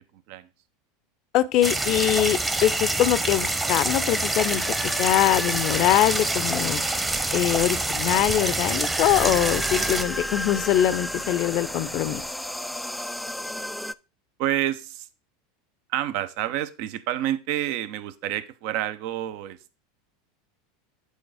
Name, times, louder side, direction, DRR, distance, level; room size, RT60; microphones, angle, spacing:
voice 1, 1.3-6.8 7.3-12.2, left 13 dB, 50° left, 0.6 m, -23 dB
sound 1, 1.6-10.0, right 2 dB, 15° right, 0.9 m, -26 dB
sound 2, 3.3-13.9, left 1 dB, 5° left, 0.3 m, -34 dB
sound 3, 7.1-12.3, right 4 dB, 40° right, 1.4 m, -43 dB
voice 2, 14.4-15.1 15.9-19.7, right 13 dB, 60° right, 0.7 m, -28 dB
8.4 x 4.0 x 4.8 m
hypercardioid pair, 85°, 0 cm